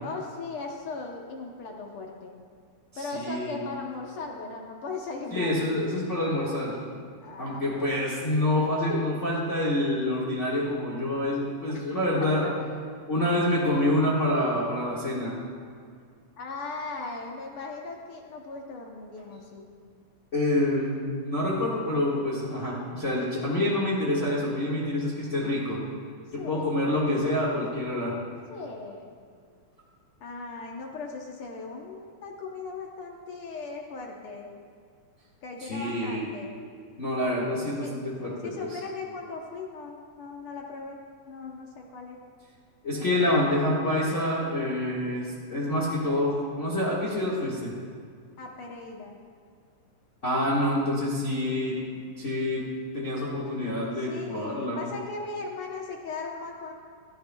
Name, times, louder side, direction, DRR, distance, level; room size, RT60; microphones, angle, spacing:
voice 1, 0.0-2.3 2.9-5.6 7.2-7.7 12.4-12.5 16.4-19.7 26.4-26.7 27.2-27.3 28.5-29.1 30.2-34.5 35.4-36.5 37.8-37.9 38.4-41.0 41.3-42.2 43.0-43.7 48.4-49.2 54.0-56.7, left 3 dB, 65° left, 1 dB, 1.4 m, -38 dB
voice 2, 2.9-3.6 5.3-6.7 7.4-12.5 13.1-15.4 20.3-25.8 26.3-28.1 35.6-36.3 37.0-38.8 42.8-47.8 50.2-51.8 52.2-52.7 52.9-54.8, left 1 dB, 30° left, -6 dB, 1.4 m, -27 dB
16.0 x 14.5 x 2.2 m, 2.2 s
omnidirectional pair, 3.4 m